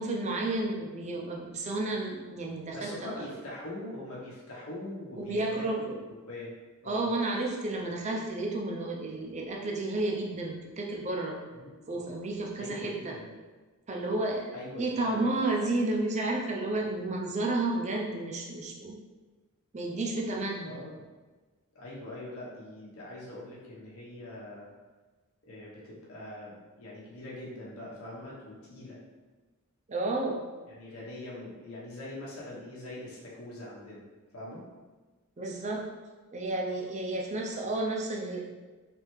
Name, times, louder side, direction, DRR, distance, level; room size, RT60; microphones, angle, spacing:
voice 1, 0.0-3.4 5.2-6.0 6.9-11.4 11.9-13.2 13.9-19.0 19.7-20.8 29.9-30.4 35.4-35.9 36.3-38.4, right 2 dB, 30° right, 0 dB, 0.5 m, -31 dB
voice 2, 2.7-5.6 6.1-6.5 6.8-7.1 11.5-12.1 12.6-13.3 14.5-15.4 20.6-21.0 21.7-24.7 25.5-29.0 30.7-34.0 34.3-34.6, left 1 dB, 70° left, -6 dB, 1.0 m, -43 dB
3.5 x 3.3 x 3.1 m, 1.3 s
head